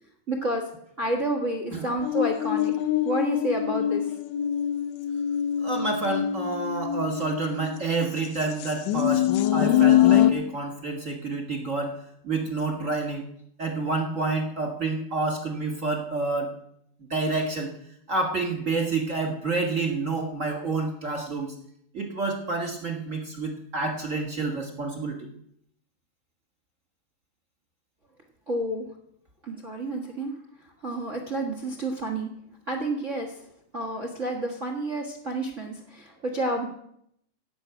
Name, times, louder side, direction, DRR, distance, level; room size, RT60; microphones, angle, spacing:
voice 1, 0.3-0.6 1.0-2.7 3.0-4.1 28.5-28.9 29.4-30.3 30.8-32.3 32.7-33.4 33.7-36.7, right 1 dB, 65° right, 2 dB, 0.7 m, -29 dB
sound 1, 2.0-7.8 8.4-10.3, left 11 dB, 70° left, 1.8 m, -24 dB
voice 2, 5.6-12.0 12.2-13.2 13.6-16.5 17.1-17.7 18.1-21.6 21.9-25.3, right 3 dB, 40° right, 2 dB, 1.1 m, -28 dB
16.5 x 6.2 x 8.1 m, 0.72 s
omnidirectional pair, 4.0 m